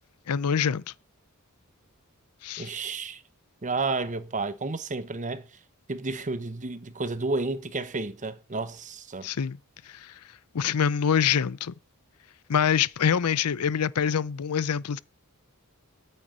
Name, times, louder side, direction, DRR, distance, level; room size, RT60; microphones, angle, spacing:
voice 1, 0.3-0.8 2.4-2.7 9.2-9.6 9.9-10.1 10.5-11.7 12.5-15.0, left 7 dB, 85° left, 0.5 m, -25 dB
voice 2, 2.6-3.2 3.6-5.5 5.9-9.3, right 3 dB, 35° right, 1.0 m, -31 dB
9.5 x 7.6 x 8.8 m
head